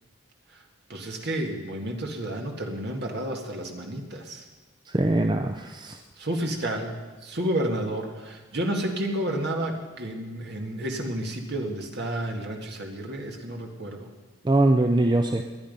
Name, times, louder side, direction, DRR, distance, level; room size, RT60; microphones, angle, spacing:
voice 1, 0.9-4.4 6.2-14.1, right 1 dB, 50° right, 2 dB, 2.0 m, -31 dB
voice 2, 4.9-6.0 14.4-15.4, right 2 dB, 20° right, 5 dB, 0.5 m, -22 dB
20.0 x 10.5 x 5.4 m, 1.3 s
head